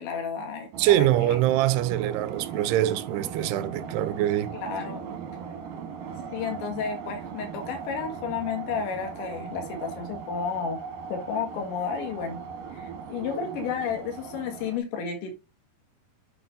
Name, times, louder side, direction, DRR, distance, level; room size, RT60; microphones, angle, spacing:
voice 1, 0.0-0.7 1.0-1.1 4.5-5.1 6.3-10.8 11.1-12.4 12.7-15.3, left 6 dB, 80° left, 4.0 m, -32 dB
sound 1, 0.7-14.8, right 6 dB, 65° right, 2.2 m, -38 dB
voice 2, 0.8-4.5, right 14 dB, 80° right, 2.4 m, -24 dB
10.5 x 6.2 x 2.6 m
omnidirectional pair, 5.2 m